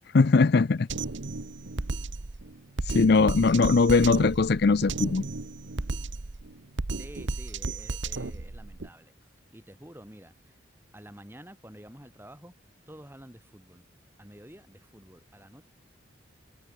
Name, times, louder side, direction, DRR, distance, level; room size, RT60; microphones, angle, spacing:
voice 1, 0.1-0.9 2.9-5.2, left 4 dB, 55° left, 0.5 m, -20 dB
Drum kit, 0.9-8.9, right 3 dB, 70° right, 1.1 m, -34 dB
voice 2, 6.9-10.6 10.9-12.5 12.9-13.9 14.2-15.6, equal, 10° right, 3.7 m, -49 dB
head